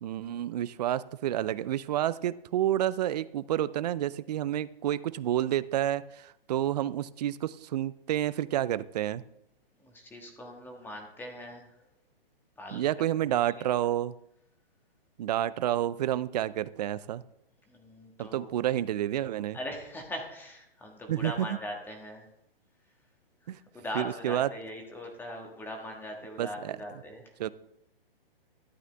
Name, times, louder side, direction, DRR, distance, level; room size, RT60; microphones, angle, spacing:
voice 1, 0.0-9.2 12.7-14.1 15.2-17.2 18.2-19.6 21.1-21.6 23.5-23.6 23.9-24.5 26.4-26.8 27.4-27.5, right 12 dB, 45° right, 17 dB, 0.5 m, -29 dB
voice 2, 9.8-11.7 12.6-12.8 13.3-13.4 17.7-18.5 19.5-22.3 23.7-27.2, left 1 dB, 5° left, 2 dB, 1.5 m, -40 dB
12.5 x 8.7 x 3.4 m, 0.80 s
hypercardioid pair, 140°, 30 cm